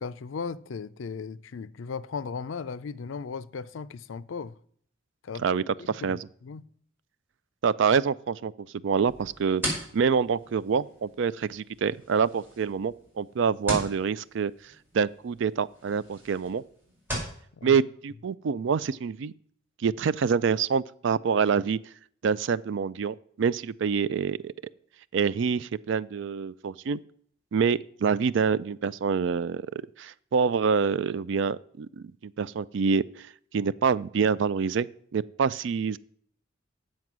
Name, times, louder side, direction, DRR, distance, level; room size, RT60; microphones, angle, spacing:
voice 1, 0.0-4.5 5.2-6.6 17.6-17.8, left 5 dB, 80° left, 0.4 m, -37 dB
voice 2, 5.4-6.2 7.6-14.5 14.9-16.6 17.6-19.3 19.8-21.8 22.2-24.5 25.1-27.0 27.5-33.3 33.5-34.9 35.1-36.0, right 6 dB, 65° right, 0.4 m, -26 dB
sound 1, 9.1-17.4, equal, 10° right, 5.0 m, -39 dB
9.3 x 7.5 x 6.1 m
head